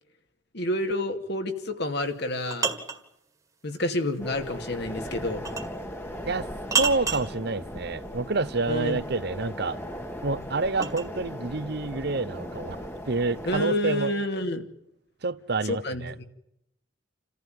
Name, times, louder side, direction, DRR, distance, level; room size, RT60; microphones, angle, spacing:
voice 1, 0.5-2.7 3.6-5.5 8.7-9.0 13.4-14.7 15.6-16.2, left 1 dB, 55° left, 6 dB, 2.5 m, -29 dB
sound 1, 2.1-3.1 5.4-5.8 6.7-7.3 9.6-11.1, right 5 dB, 15° right, 2.0 m, -29 dB
sound 2, 4.2-13.7, equal, 10° left, 1.7 m, -38 dB
voice 2, 6.8-9.8 10.2-12.8 13.1-14.1 15.2-16.1, right 3 dB, 55° right, 16 dB, 0.9 m, -28 dB
28.5 x 15.0 x 9.2 m, 0.82 s
head